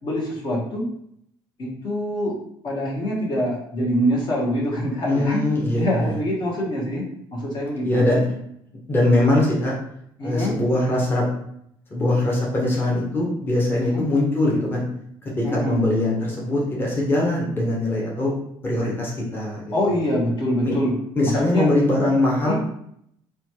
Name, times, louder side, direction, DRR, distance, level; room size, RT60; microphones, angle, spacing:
voice 1, 0.0-0.9 1.6-2.4 2.6-5.4 5.8-7.0 7.3-8.1 10.2-10.6 13.8-14.0 15.4-15.8 19.7-20.9 21.2-21.7 22.4-22.5, equal, 50° left, -3 dB, 0.9 m, -25 dB
voice 2, 5.1-6.2 7.8-8.2 8.9-9.7 10.2-11.2 11.9-14.8 15.4-18.3 18.6-19.7 20.6-20.8 21.1-22.5, left 1 dB, 20° left, -4 dB, 0.8 m, -21 dB
3.0 x 2.2 x 2.8 m, 0.73 s
cardioid pair, 105°, 10 cm